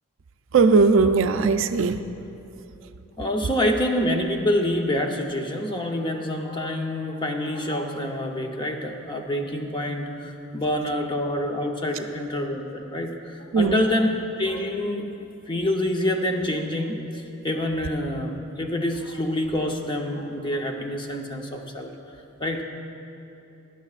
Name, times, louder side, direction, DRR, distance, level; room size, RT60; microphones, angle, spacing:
voice 1, 0.5-2.0 13.5-13.8, right 4 dB, 60° right, 9 dB, 0.4 m, -18 dB
voice 2, 3.2-14.1 14.4-15.1 15.5-21.9 22.4-22.6, left 1 dB, 20° left, 2 dB, 0.8 m, -27 dB
16.5 x 11.5 x 2.4 m, 2.9 s
head